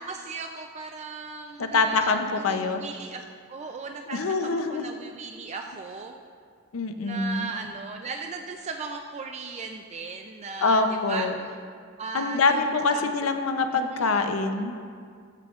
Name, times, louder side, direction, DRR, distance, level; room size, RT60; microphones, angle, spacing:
voice 1, 0.0-6.1 7.0-10.8 11.1-11.6 12.0-13.1 13.7-14.3, right 4 dB, 35° right, 4 dB, 0.4 m, -37 dB
voice 2, 1.6-2.8 4.1-4.9 6.7-7.5 10.6-11.3 12.1-14.7, left 3 dB, 80° left, 7 dB, 0.6 m, -25 dB
14.5 x 9.7 x 2.4 m, 2.1 s
head